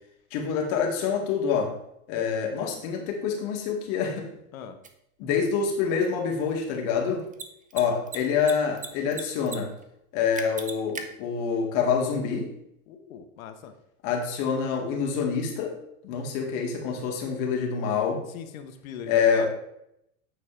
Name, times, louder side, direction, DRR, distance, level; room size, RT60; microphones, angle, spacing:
voice 1, 0.3-1.8 2.1-4.3 5.2-7.3 7.7-9.7 10.1-12.5 14.0-15.8 16.0-18.2 19.1-19.5, left 6 dB, 60° left, 1 dB, 2.2 m, -26 dB
Mechanisms, 4.8-4.9 7.2-7.4 7.7-7.8 8.1-8.9 9.1-9.6 9.8-9.9 10.4-11.0, right 5 dB, 20° right, 0.8 m, -36 dB
voice 2, 12.9-13.7 18.3-19.5, left 8 dB, 75° left, 8 dB, 1.0 m, -40 dB
9.1 x 4.1 x 4.4 m, 0.77 s
hypercardioid pair, 100°, 42 cm